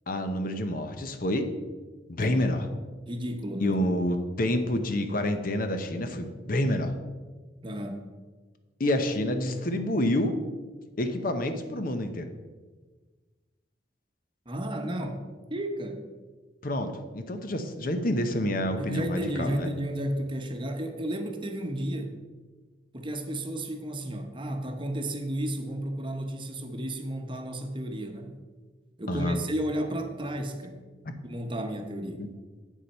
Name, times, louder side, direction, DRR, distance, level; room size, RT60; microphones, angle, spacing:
voice 1, 0.1-1.5 2.1-2.7 3.6-6.9 8.8-10.3 11.0-12.3 16.6-19.7 29.1-29.4 32.2-32.3, left 1 dB, 50° left, 8 dB, 0.8 m, -28 dB
voice 2, 3.1-3.7 7.6-8.0 14.5-15.2 15.5-16.0 18.8-22.2 22.9-28.4 29.0-30.8 31.2-32.3, right 1 dB, 30° right, 5 dB, 0.9 m, -33 dB
8.3 x 7.3 x 5.4 m, 1.3 s
head